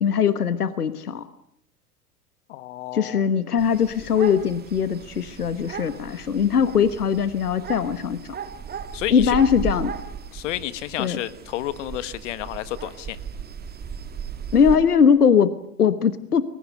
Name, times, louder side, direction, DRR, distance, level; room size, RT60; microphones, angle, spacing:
voice 1, 0.0-1.3 2.9-8.2 9.1-9.9 11.0-11.2 14.5-16.4, left 7 dB, 75° left, 14 dB, 1.4 m, -20 dB
voice 2, 2.5-3.2 8.9-9.4 10.3-13.2, left 14 dB, 50° left, 16 dB, 1.5 m, -31 dB
sound 1, 3.6-14.8, right 7 dB, 20° right, 2.2 m, -36 dB
30.0 x 22.0 x 6.7 m, 0.74 s
figure-of-eight pair, 85°, 46 cm